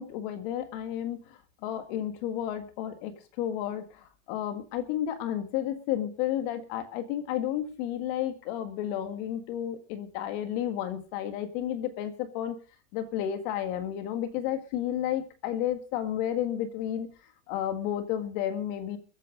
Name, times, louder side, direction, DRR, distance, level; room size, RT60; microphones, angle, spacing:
voice 1, 0.0-12.6 12.9-17.1 17.5-19.0, left 11 dB, 40° left, 9 dB, 1.8 m, -32 dB
21.5 x 8.4 x 5.2 m, 0.36 s
supercardioid pair, 160°, 38 cm